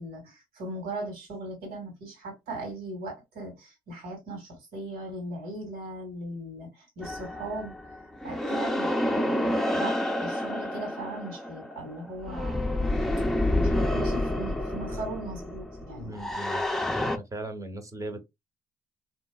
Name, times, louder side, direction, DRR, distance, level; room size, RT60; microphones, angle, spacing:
voice 1, 0.0-12.6 13.6-16.2, right 1 dB, 75° right, 1.8 m, -39 dB
sound 1, 7.0-17.2, left 1 dB, ahead, 0.6 m, -29 dB
voice 2, 13.4-13.7 14.9-15.1 15.9-16.6 17.1-18.2, right 2 dB, 20° right, 0.9 m, -39 dB
3.0 x 2.8 x 2.2 m
supercardioid pair, 60°, 15 cm